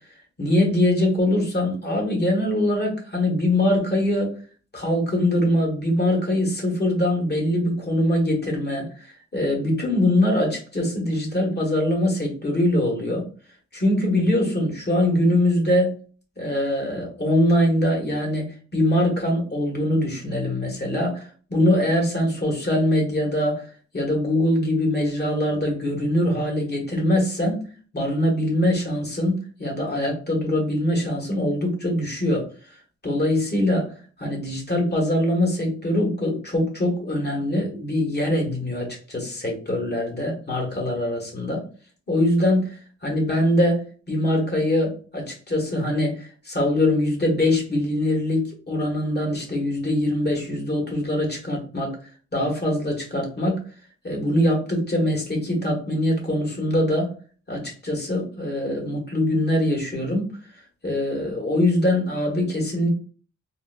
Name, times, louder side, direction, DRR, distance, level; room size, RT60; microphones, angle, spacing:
voice 1, 0.4-4.4 4.7-13.2 13.7-15.9 16.4-23.7 23.9-27.6 27.9-32.5 33.0-33.9 34.2-41.6 42.1-52.0 52.3-53.6 54.0-57.1 57.5-60.4 60.8-62.9, left 1 dB, 35° left, 0 dB, 1.4 m, -23 dB
3.9 x 2.3 x 2.4 m, 0.39 s
cardioid pair, 70°, 30 cm